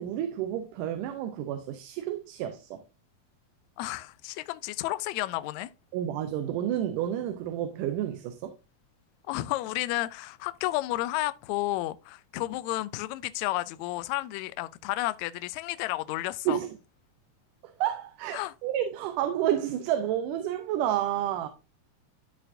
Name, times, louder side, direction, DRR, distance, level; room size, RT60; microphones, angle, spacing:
voice 1, 0.0-2.8 5.9-8.5 16.5-16.7 17.6-21.5, right 11 dB, 90° right, 2.3 m, -30 dB
voice 2, 3.8-5.7 9.3-16.6 18.3-18.5, left 17 dB, 80° left, 1.7 m, -32 dB
13.0 x 4.4 x 2.6 m
omnidirectional pair, 3.7 m